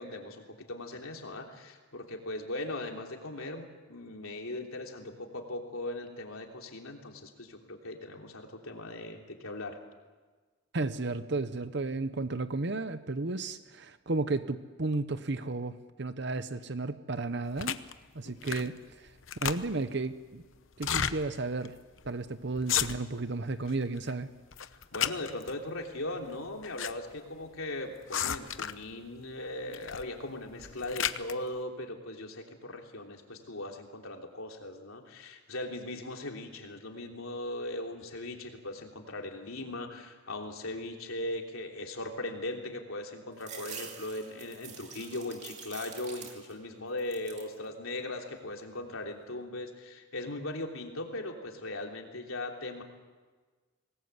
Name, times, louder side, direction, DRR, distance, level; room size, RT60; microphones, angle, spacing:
voice 1, 0.0-9.8 18.2-18.6 24.7-52.8, left 2 dB, 85° left, 2 dB, 3.3 m, -39 dB
voice 2, 10.7-17.8 18.1-19.1 19.4-20.4 20.8-21.8 22.0-24.3, right 3 dB, 55° right, 11 dB, 0.8 m, -33 dB
sound 1, 17.6-17.9 18.4-18.8 19.1-19.9 20.7-21.2 21.6-21.7 22.0-22.2 22.6-23.2 23.7-24.1 24.5-25.5 26.3-26.9 27.2-27.3 28.1-28.9 29.7-30.1 30.5-31.3, left 9 dB, 70° left, 0.9 m, -32 dB
sound 2, 43.4-46.7 47.0-47.6 48.1-48.8, right 6 dB, 35° right, 2.6 m, -46 dB
25.5 x 19.5 x 8.1 m, 1.4 s
head